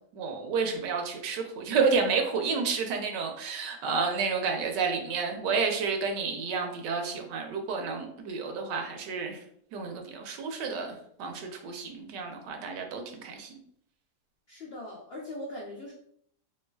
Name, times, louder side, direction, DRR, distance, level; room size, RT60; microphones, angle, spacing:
voice 1, 0.1-9.4 9.7-10.9 11.2-13.5, right 5 dB, 85° right, 4 dB, 1.3 m, -30 dB
voice 2, 14.5-15.9, left 1 dB, 85° left, -3 dB, 0.5 m, -40 dB
3.2 x 3.1 x 2.2 m, 0.67 s
omnidirectional pair, 1.8 m